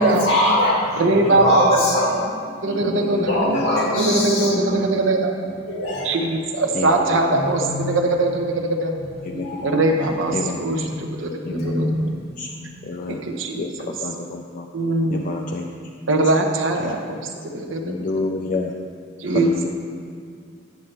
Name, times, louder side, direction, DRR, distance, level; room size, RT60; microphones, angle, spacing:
voice 1, 0.0-1.0 1.3-3.0 3.3-4.5 5.6-6.1 7.4-7.7 9.3-10.1 10.7-10.9 11.4-12.1, left 1 dB, 90° left, -4 dB, 1.9 m, -22 dB
voice 2, 1.0-1.8 2.6-3.5 3.9-5.3 6.0-9.0 9.6-10.9 11.2-11.3 11.6-11.9 13.2-13.7 14.7-15.3 16.1-17.2 17.5-18.0 19.2-19.5, right 2 dB, 70° right, 2 dB, 0.8 m, -21 dB
voice 3, 2.8-3.3 4.4-4.9 6.7-6.9 7.3-7.4 9.4-9.5 10.3-10.9 11.4-11.9 12.4-12.5 12.8-13.2 13.6-14.7 15.1-15.6 16.8-16.9 17.8-18.7 19.3-19.7, left 3 dB, 45° left, 1 dB, 0.4 m, -29 dB
9.4 x 7.1 x 3.3 m, 2.2 s
head